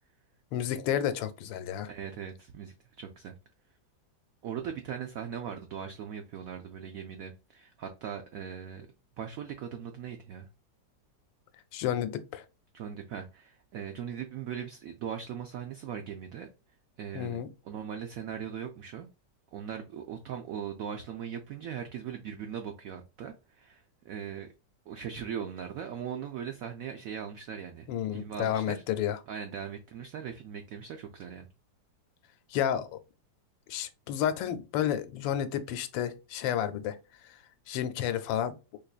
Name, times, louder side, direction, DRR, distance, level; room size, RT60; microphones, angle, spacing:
voice 1, 0.5-1.9 11.7-12.4 17.1-17.5 27.9-29.2 32.5-33.0 33.7-37.0 37.2-37.4 37.7-38.5, left 10 dB, 85° left, 1.3 m, -31 dB
voice 2, 1.9-3.3 4.4-8.9 9.2-10.5 12.7-16.5 17.0-17.4 17.6-19.1 19.5-24.5 24.9-28.8 29.3-31.5, right 8 dB, 85° right, 0.7 m, -39 dB
4.0 x 3.0 x 2.3 m
omnidirectional pair, 2.0 m